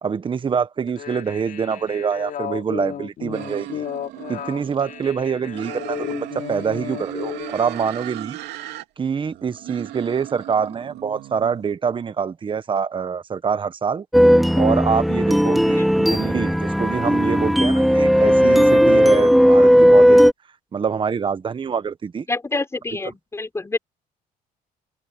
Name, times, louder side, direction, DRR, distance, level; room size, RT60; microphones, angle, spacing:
voice 1, 0.0-3.8 4.3-8.4 9.0-14.0 14.6-20.2 20.7-22.3, right 6 dB, 30° right, 1.2 m, -25 dB
sound 1, 0.9-7.6, left 9 dB, 55° left, 3.1 m, -33 dB
sound 2, 3.3-5.2 5.5-8.8 9.2-11.7, right 14 dB, 80° right, 3.0 m, -37 dB
sound 3, 14.1-20.3, equal, ahead, 1.9 m, -15 dB
voice 2, 22.3-23.8, left 3 dB, 15° left, 4.5 m, -27 dB
cardioid pair, 110°, 17 cm